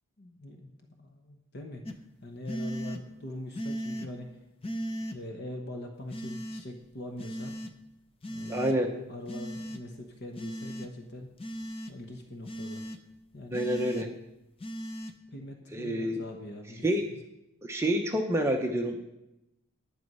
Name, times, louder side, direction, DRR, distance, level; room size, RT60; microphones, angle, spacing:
voice 1, 0.2-4.3 4.9-7.5 8.3-11.3 11.9-12.8 13.3-13.7 15.3-16.9, left 1 dB, 50° left, 3 dB, 1.1 m, -43 dB
sound 1, 1.9-2.0 2.5-3.0 3.5-4.1 4.6-5.2 6.1-6.6 7.2-7.7 8.2-8.8 9.3-9.8 10.4-10.9 11.4-11.9 12.5-13.0 13.5-14.1 14.6-15.1, equal, 25° left, 0.6 m, -37 dB
voice 2, 8.5-8.9 13.5-14.1 15.7-16.2 16.8-17.1 17.6-19.0, right 1 dB, 10° right, 2 dB, 0.8 m, -28 dB
11.0 x 8.9 x 5.5 m, 0.91 s
head